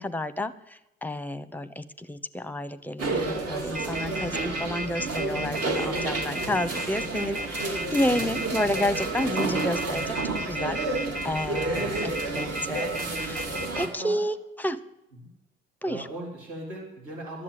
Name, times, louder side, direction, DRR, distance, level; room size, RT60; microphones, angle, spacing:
voice 1, 0.0-10.2 10.5-10.8 11.2-12.9 13.2-14.8 15.8-16.1, left 1 dB, 5° left, 15 dB, 0.9 m, -30 dB
sound 1, 3.0-13.9, right 3 dB, 50° right, 2.6 m, -30 dB
sound 2, 3.7-13.9, equal, 25° right, 1.5 m, -34 dB
voice 2, 11.7-12.1 13.7-14.2 15.2-15.3 15.8-17.4, right 2 dB, 70° right, -3 dB, 3.8 m, -38 dB
11.0 x 7.5 x 9.5 m, 0.89 s
hypercardioid pair, 45°, 32 cm